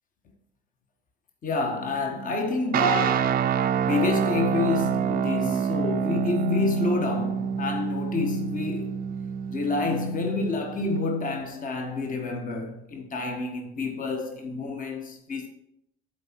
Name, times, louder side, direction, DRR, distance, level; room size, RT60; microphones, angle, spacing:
voice 1, 1.4-3.5 3.8-9.0 9.5-15.5, left 3 dB, 40° left, 1.3 m, -28 dB
sound 1, 2.7-11.0, right 8 dB, 45° right, 0.5 m, -27 dB
8.1 x 4.3 x 6.0 m
supercardioid pair, 85°, 21 cm